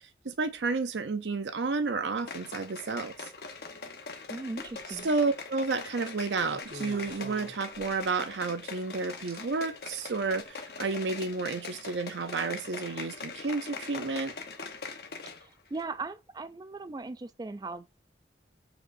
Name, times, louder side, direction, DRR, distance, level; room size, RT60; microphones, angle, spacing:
voice 1, 0.2-3.3 5.0-14.3, right 4 dB, 85° right, 0.6 m, -31 dB
sound 1, 2.2-15.5 15.8-15.9, left 4 dB, 60° left, 1.1 m, -42 dB
voice 2, 4.3-5.1 15.4-17.9, right 3 dB, 20° right, 0.3 m, -38 dB
sound 2, 4.6-5.0 6.4-8.1 9.3-9.4 10.2-10.4, right 1 dB, 65° right, 1.5 m, -46 dB
7.9 x 4.9 x 2.6 m
head